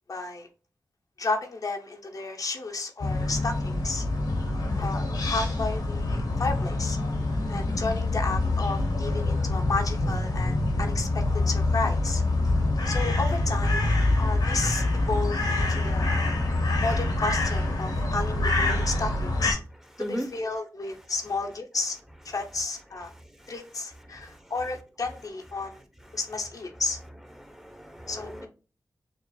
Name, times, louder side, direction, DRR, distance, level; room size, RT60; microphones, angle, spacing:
voice 1, 0.1-0.5 1.2-4.1 4.8-7.0 7.5-12.2 12.9-13.8 14.2-16.2 16.8-19.6 20.0-22.0 22.2-23.1 23.5-25.8 26.1-27.0 28.1-28.5, left 3 dB, 60° left, 0.7 m, -32 dB
sound 1, 3.0-19.5, left 2 dB, 85° left, 1.2 m, -26 dB
voice 2, 23.1-23.5 24.0-24.5 27.3-28.5, equal, 5° right, 0.9 m, -37 dB
6.6 x 2.4 x 2.3 m
cardioid pair, 45°, 7 cm